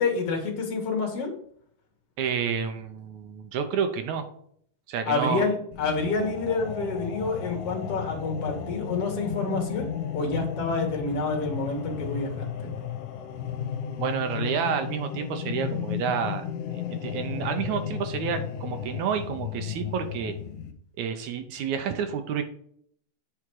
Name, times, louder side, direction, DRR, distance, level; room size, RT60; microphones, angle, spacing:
voice 1, 0.0-1.3 5.1-9.8 10.1-12.7, left 3 dB, 50° left, 2 dB, 2.3 m, -28 dB
voice 2, 2.2-4.3 4.9-5.5 14.0-16.4 16.7-20.3 21.0-22.4, right 7 dB, 70° right, 7 dB, 2.0 m, -29 dB
sound 1, 5.7-20.7, left 9 dB, 75° left, 2.3 m, -34 dB
8.5 x 5.0 x 4.7 m, 0.63 s
omnidirectional pair, 3.7 m